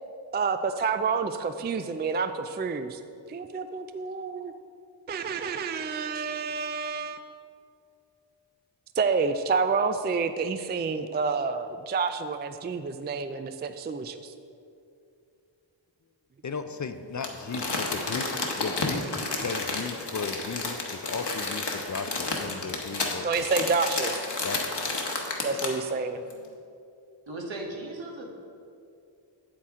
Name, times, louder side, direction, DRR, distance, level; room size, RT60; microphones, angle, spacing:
voice 1, 0.3-3.0 3.3-4.5 5.1-7.3 9.0-14.3 23.2-24.2 25.4-26.2, right 4 dB, 25° right, 9 dB, 0.3 m, -29 dB
voice 2, 16.4-18.3 18.6-19.0 19.4-23.4 24.4-24.6, left 5 dB, 40° left, 9 dB, 0.5 m, -35 dB
Crumpling crinkling, 17.2-25.9 26.3-26.4, left 3 dB, 60° left, 1.2 m, -31 dB
voice 3, 27.3-28.3, right 2 dB, 75° right, 0 dB, 1.4 m, -37 dB
8.4 x 7.8 x 3.7 m, 2.5 s
wide cardioid pair, 55°, 46 cm